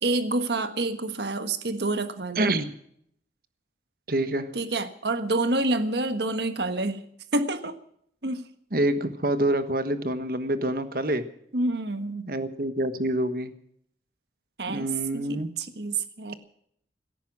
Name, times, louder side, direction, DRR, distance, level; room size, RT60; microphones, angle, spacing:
voice 1, 0.0-2.5 4.5-7.0 7.3-7.8 8.2-8.4 11.5-12.3 14.6-16.3, right 2 dB, 70° right, 9 dB, 1.4 m, -28 dB
voice 2, 2.3-2.7 4.1-4.5 8.7-11.2 12.3-13.5 14.7-15.5, right 1 dB, 55° right, 10 dB, 1.3 m, -26 dB
17.0 x 14.0 x 6.1 m, 0.67 s
head